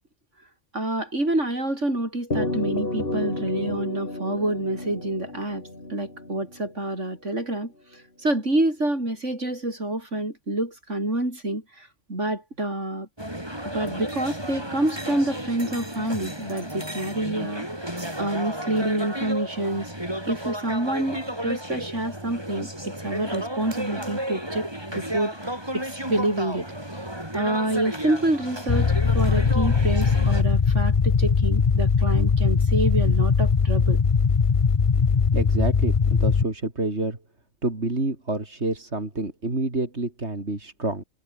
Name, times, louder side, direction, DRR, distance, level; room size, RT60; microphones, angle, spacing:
voice 1, 0.7-5.6 5.9-13.1 13.6-19.9 20.3-26.6 26.9-27.0 27.3-34.0, right 1 dB, 85° right, 7.9 m, -27 dB
sound 1, 2.3-6.9, left 2 dB, 50° left, 5.0 m, -31 dB
sound 2, 13.2-30.4, right 1 dB, 20° right, 6.8 m, -33 dB
sound 3, 28.7-36.4, left 5 dB, 35° left, 0.7 m, -20 dB
voice 2, 35.3-37.2 37.6-41.0, right 2 dB, 65° right, 4.4 m, -28 dB
omnidirectional pair, 1.2 m